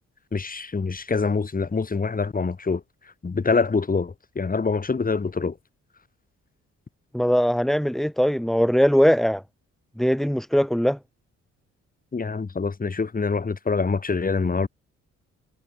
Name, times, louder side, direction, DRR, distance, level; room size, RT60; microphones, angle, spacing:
voice 1, 0.3-2.8 3.2-5.6 12.1-14.7, left 4 dB, 30° left, 4.8 m, -25 dB
voice 2, 7.1-9.4 10.0-11.0, equal, ahead, 2.4 m, -20 dB
cardioid pair, 105°, 30 cm